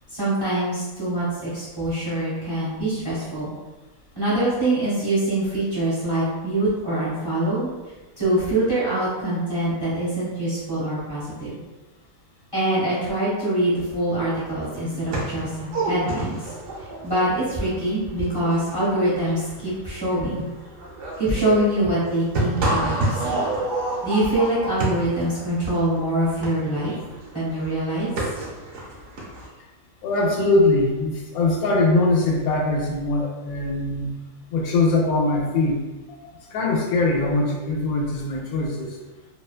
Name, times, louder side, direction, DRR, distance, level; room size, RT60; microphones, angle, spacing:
voice 1, 0.1-3.5 4.1-7.7 8.2-11.6 12.5-16.5 16.8-20.5 21.2-23.3 24.0-26.9 27.3-28.1, right 1 dB, 20° right, -9 dB, 0.7 m, -24 dB
sound 1, 14.1-14.2 14.4-29.5, right 2 dB, 65° right, 0.9 m, -29 dB
voice 2, 30.0-34.2 34.5-35.8 36.5-39.0, left 2 dB, 90° left, 0 dB, 1.1 m, -22 dB
2.6 x 2.2 x 2.3 m, 1.2 s
omnidirectional pair, 1.5 m